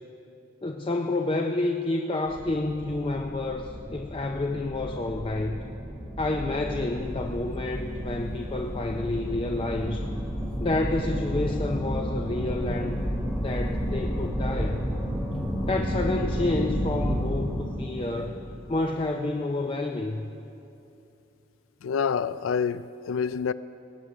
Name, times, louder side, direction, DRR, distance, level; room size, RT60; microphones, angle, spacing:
voice 1, 0.6-5.6 6.2-10.1 10.6-13.0 13.4-14.8 15.6-18.4 18.7-20.3, left 2 dB, 25° left, 0.5 m, -29 dB
sound 1, 2.3-19.3, equal, ahead, 1.3 m, -31 dB
voice 2, 21.8-23.5, left 6 dB, 90° left, 0.4 m, -27 dB
18.5 x 8.1 x 6.1 m
head